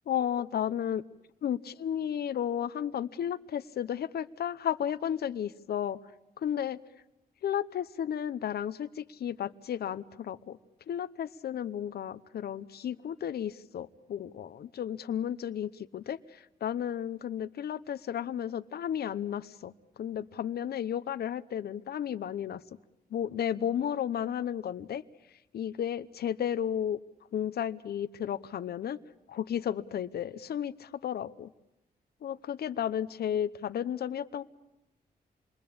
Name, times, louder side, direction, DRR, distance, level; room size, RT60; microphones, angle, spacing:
voice 1, 0.1-1.0 1.4-6.0 6.4-6.8 7.4-10.6 10.9-19.7 20.0-22.6 23.1-25.0 25.5-27.0 27.3-29.0 29.3-31.5 32.2-34.4, left 9 dB, 75° left, 12 dB, 0.9 m, -33 dB
28.5 x 22.5 x 8.7 m, 0.90 s
wide cardioid pair, 165°, 16 cm